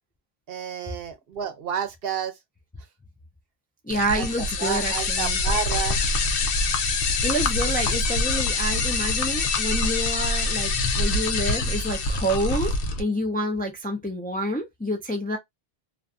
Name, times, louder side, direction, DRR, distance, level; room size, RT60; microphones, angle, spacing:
voice 1, 0.5-2.3 4.2-4.3 4.6-6.0, right 7 dB, 70° right, 0.9 m, -30 dB
voice 2, 3.8-5.4 7.2-12.7 13.0-15.4, equal, 10° left, 0.4 m, -28 dB
sound 1, 3.9-13.0, left 3 dB, 65° left, 0.8 m, -25 dB
2.5 x 2.2 x 2.5 m
omnidirectional pair, 1.0 m